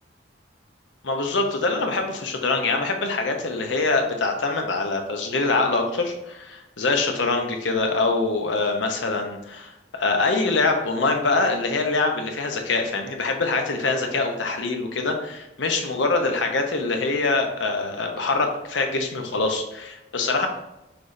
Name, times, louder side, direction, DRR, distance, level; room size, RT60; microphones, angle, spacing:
voice 1, 1.0-20.5, left 3 dB, 80° left, 4 dB, 0.8 m, -24 dB
5.9 x 3.2 x 2.6 m, 0.93 s
head